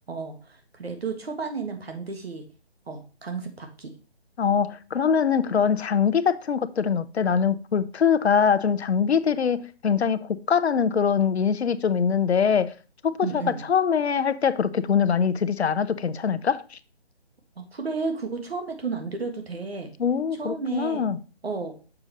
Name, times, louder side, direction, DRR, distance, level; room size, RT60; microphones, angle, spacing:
voice 1, 0.1-2.5 2.9-3.9 13.2-13.6 17.6-19.9 20.4-21.0 21.4-21.8, right 4 dB, 70° right, 1.5 m, -32 dB
voice 2, 4.4-12.7 13.0-13.2 13.7-16.8 20.0-21.2, left 7 dB, 80° left, 0.7 m, -23 dB
6.9 x 5.0 x 4.0 m
hypercardioid pair, 175°, 32 cm